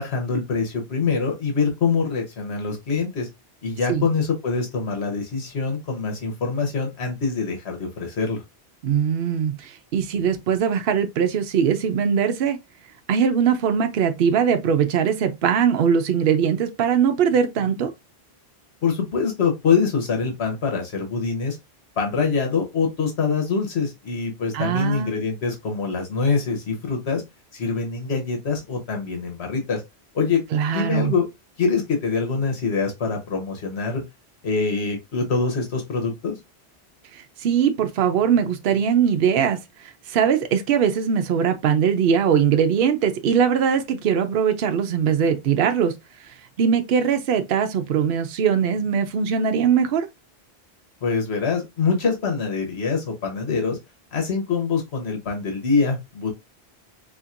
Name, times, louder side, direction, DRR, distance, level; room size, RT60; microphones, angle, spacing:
voice 1, 0.0-3.3 3.6-8.4 18.8-21.6 22.0-27.2 27.5-29.8 30.1-30.4 30.7-31.3 31.6-34.0 34.4-36.4 51.0-53.8 54.1-56.3, left 5 dB, 80° left, 1.3 m, -24 dB
voice 2, 8.8-12.6 13.1-17.9 24.5-25.3 30.5-31.1 37.1-45.9 46.6-50.1, right 7 dB, 65° right, 0.8 m, -21 dB
4.2 x 2.8 x 2.4 m
omnidirectional pair, 1.1 m